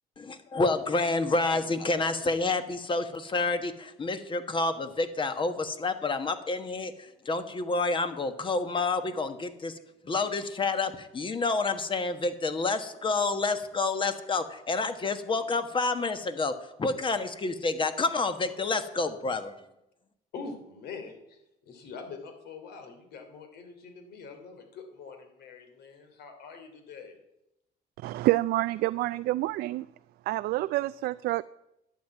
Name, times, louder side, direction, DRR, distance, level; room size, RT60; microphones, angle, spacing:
voice 1, 0.2-9.8 10.0-19.5, left 3 dB, 30° left, 1.3 m, -29 dB
voice 2, 1.5-2.0 20.3-21.4 21.7-27.2, left 4 dB, 75° left, 3.0 m, -44 dB
voice 3, 28.0-29.9 30.3-31.4, right 17 dB, 70° right, 0.4 m, -27 dB
11.5 x 7.5 x 9.3 m
cardioid pair, 110°, 17 cm